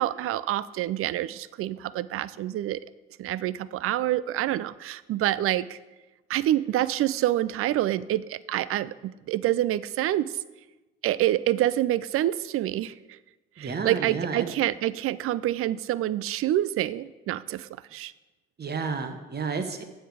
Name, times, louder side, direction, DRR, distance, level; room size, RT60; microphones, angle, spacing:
voice 1, 0.0-2.8 3.2-5.8 6.3-10.3 11.0-13.2 13.6-18.1, right 13 dB, 50° right, 18 dB, 0.4 m, -27 dB
voice 2, 13.6-14.5 18.6-19.8, right 5 dB, 35° right, 7 dB, 1.1 m, -31 dB
7.6 x 7.0 x 4.9 m, 1.1 s
hypercardioid pair, 50°, 29 cm